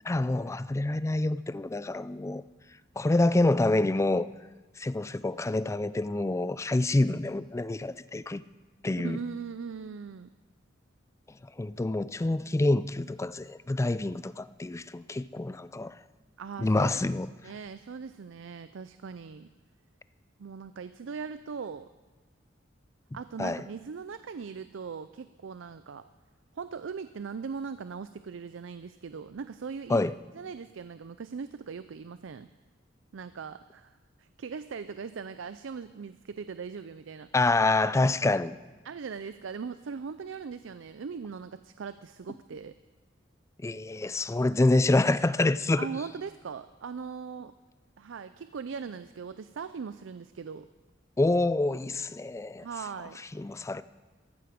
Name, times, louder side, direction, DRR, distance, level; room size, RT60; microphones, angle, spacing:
voice 1, 0.0-2.4 3.0-4.3 4.8-8.4 8.8-9.2 11.6-16.0 16.6-17.3 23.4-23.6 29.9-30.1 37.3-38.6 43.6-45.9 51.2-52.7 53.3-53.8, left 2 dB, 15° left, 0.3 m, -27 dB
voice 2, 9.0-10.3 16.4-17.0 17.4-19.5 20.4-21.9 23.1-26.0 26.5-30.0 30.3-32.5 33.1-33.9 34.2-37.3 38.8-42.7 45.8-47.5 48.0-50.7 52.6-53.2, right 5 dB, 85° right, 0.5 m, -39 dB
14.5 x 13.5 x 5.1 m
head